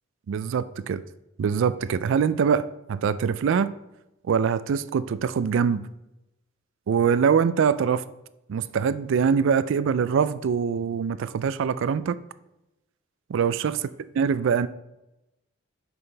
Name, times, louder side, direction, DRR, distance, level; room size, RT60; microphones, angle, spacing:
voice 1, 0.3-1.0 1.4-3.7 4.3-5.9 6.9-8.0 8.5-12.2 13.3-13.9 14.2-14.7, right 6 dB, 65° right, 0.3 m, -23 dB
6.7 x 5.6 x 3.3 m
head